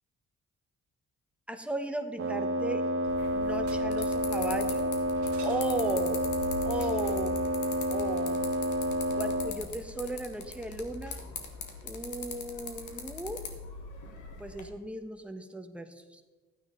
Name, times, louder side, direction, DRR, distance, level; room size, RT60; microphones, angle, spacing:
voice 1, 1.5-2.8 3.3-4.9 5.4-6.2 6.6-7.4 7.9-8.4 9.1-11.2 11.8-13.4 14.4-16.2, right 1 dB, 5° right, 6 dB, 1.2 m, -36 dB
Wind instrument woodwind instrument, 2.2-9.6, equal, 45° right, 1.3 m, -29 dB
sound 1, 2.8-3.2 3.6-4.3 5.1-6.0 6.7-7.3 9.5-9.6 9.7-9.8, right 7 dB, 75° right, 1.8 m, -52 dB
sound 2, 3.1-14.6, left 4 dB, 80° left, 2.0 m, -42 dB
13.0 x 9.2 x 3.9 m, 1.3 s
cardioid pair, 90°, 30 cm